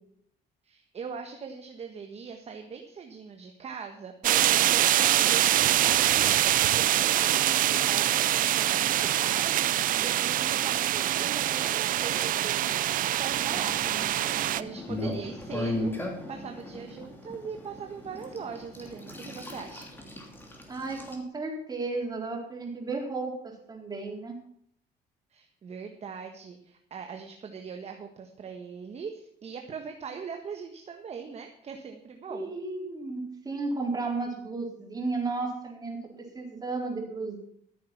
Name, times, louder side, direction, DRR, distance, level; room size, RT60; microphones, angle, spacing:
voice 1, 0.6-15.9 16.3-19.8 25.3-32.5, right 6 dB, 40° right, 5 dB, 1.4 m, -41 dB
sound 1, 4.2-14.6, right 13 dB, 55° right, 0.5 m, -24 dB
sound 2, 13.2-21.1, left 1 dB, 10° left, 3.0 m, -37 dB
voice 2, 20.7-24.4 32.3-37.4, right 3 dB, 25° right, 0 dB, 4.1 m, -33 dB
14.0 x 8.6 x 5.9 m, 0.67 s
cardioid pair, 110°, 17 cm